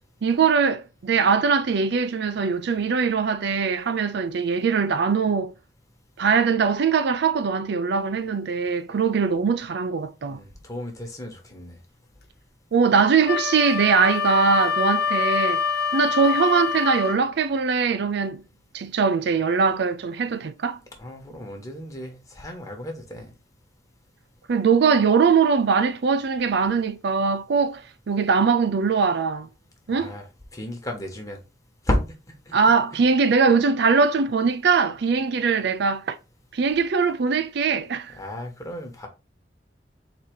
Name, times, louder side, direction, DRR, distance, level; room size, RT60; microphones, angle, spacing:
voice 1, 0.2-5.5 6.2-10.4 12.7-15.6 15.9-18.4 18.7-20.8 24.5-27.8 28.1-29.5 29.9-30.1 32.5-36.2 36.5-38.1, right 5 dB, 65° right, 0.4 m, -21 dB
voice 2, 10.3-11.8 21.0-23.3 29.9-31.4 31.8-32.2 32.5-32.7 38.1-39.1, left 1 dB, 20° left, 1.2 m, -32 dB
Wind instrument woodwind instrument, 13.3-17.2, left 6 dB, 60° left, 1.1 m, -25 dB
4.0 x 2.8 x 4.5 m
head